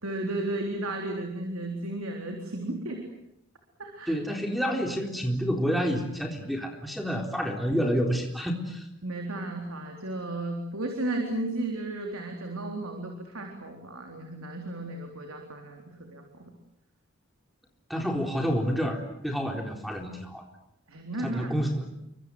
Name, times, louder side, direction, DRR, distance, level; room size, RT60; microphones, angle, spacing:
voice 1, 0.0-3.1 3.8-4.2 9.0-16.4 20.9-21.5, right 2 dB, 85° right, 2 dB, 3.9 m, -34 dB
voice 2, 4.1-8.9 17.9-20.4 21.2-21.9, equal, ahead, 2 dB, 3.9 m, -29 dB
29.5 x 24.0 x 7.9 m, 0.80 s
head